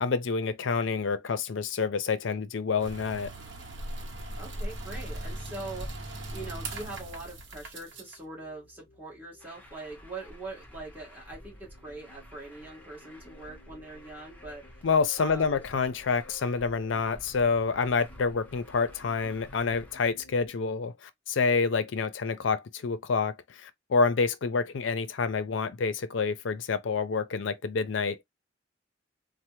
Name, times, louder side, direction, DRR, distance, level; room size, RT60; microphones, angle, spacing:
voice 1, 0.0-3.3 14.8-28.2, left 4 dB, 70° left, 0.5 m, -28 dB
sound 1, 2.8-8.2, right 1 dB, 65° right, 0.8 m, -39 dB
voice 2, 4.4-14.8 15.2-15.6, right 2 dB, 10° right, 1.4 m, -42 dB
sound 2, 7.8-20.5, left 1 dB, 40° left, 0.8 m, -57 dB
Truck, 9.4-19.9, equal, 10° left, 0.8 m, -52 dB
3.2 x 2.0 x 3.0 m
head